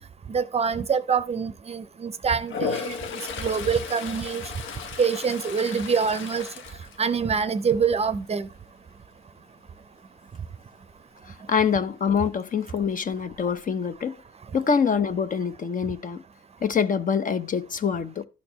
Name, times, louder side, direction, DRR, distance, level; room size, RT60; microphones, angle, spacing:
voice 1, 0.3-3.0 3.4-4.4 5.0-6.5 7.0-8.5, right 6 dB, 30° right, 0.6 m, -25 dB
Toilet flush, 2.4-7.6 8.0-8.4 12.9-13.0 13.2-14.0, left 5 dB, 80° left, 0.8 m, -35 dB
voice 2, 11.3-14.2 14.5-16.2 16.6-18.2, left 6 dB, 40° left, 0.7 m, -25 dB
12.5 x 4.3 x 2.9 m
cardioid pair, 90°, 20 cm